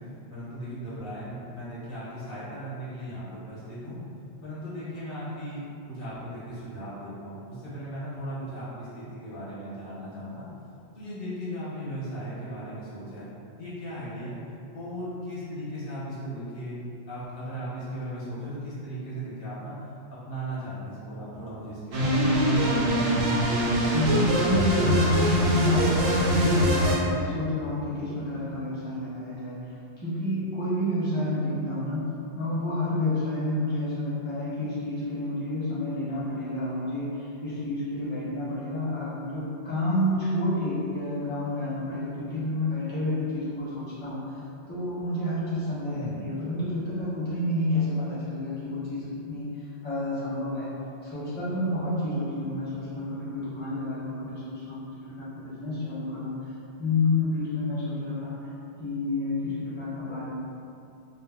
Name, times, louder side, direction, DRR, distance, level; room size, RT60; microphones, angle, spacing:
voice 1, 0.3-4.0 4.4-10.5 10.9-13.3 13.5-14.3 14.7-19.8 20.1-23.0 45.8-46.3, equal, 60° left, -9 dB, 0.9 m, -37 dB
sound 1, 21.9-27.0, equal, 80° right, 0.9 m, -23 dB
voice 2, 23.9-29.6 30.0-32.0 32.3-44.2 44.7-49.5 49.8-50.7 51.0-54.9 55.2-56.4 56.8-58.4 58.8-60.3, left 1 dB, 10° left, -11 dB, 0.5 m, -29 dB
2.3 x 2.0 x 3.4 m, 2.6 s
omnidirectional pair, 1.1 m